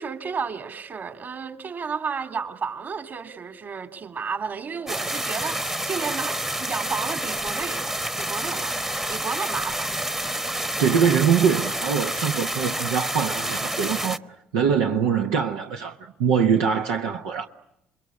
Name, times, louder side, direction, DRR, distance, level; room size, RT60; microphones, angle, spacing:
voice 1, 0.0-7.8 8.2-8.8 9.1-9.9, right 5 dB, 50° right, 3.1 m, -32 dB
sound 1, 4.9-14.2, right 1 dB, 10° right, 1.1 m, -28 dB
voice 2, 10.8-14.2 14.5-17.5, right 7 dB, 85° right, 1.1 m, -23 dB
28.0 x 22.0 x 9.8 m
hypercardioid pair, 60°, 4 cm